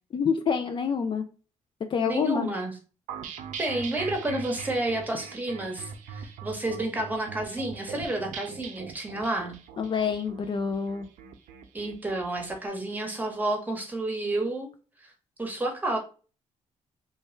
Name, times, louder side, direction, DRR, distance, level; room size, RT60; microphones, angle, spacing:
voice 1, 0.1-1.2 1.9-2.5 9.8-11.1, left 6 dB, 40° left, 7 dB, 0.4 m, -27 dB
voice 2, 2.1-2.7 3.6-9.6 11.7-14.7 15.0-15.1 15.4-16.0, right 2 dB, 15° right, 3 dB, 1.1 m, -30 dB
sound 1, 3.1-12.5, right 6 dB, 85° right, 0.6 m, -41 dB
3.2 x 2.3 x 4.3 m, 0.36 s
cardioid pair, 110°, 13 cm